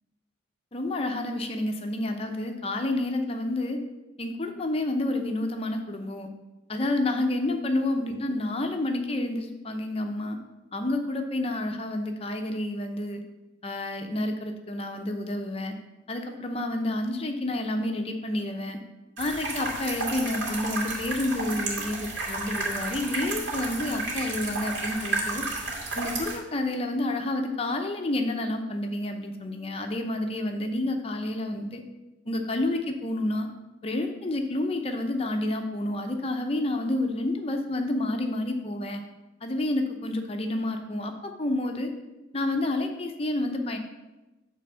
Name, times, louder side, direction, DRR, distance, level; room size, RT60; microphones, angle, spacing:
voice 1, 0.7-3.8 4.2-6.3 6.7-10.4 10.7-13.2 13.6-15.7 16.1-18.8 19.2-25.4 25.9-31.8 32.3-33.5 33.8-39.0 39.4-41.9 42.3-43.8, left 1 dB, 30° left, 5 dB, 0.6 m, -29 dB
sound 1, 19.2-26.4, right 2 dB, 85° right, 2.2 m, -32 dB
8.9 x 3.4 x 6.7 m, 1.1 s
head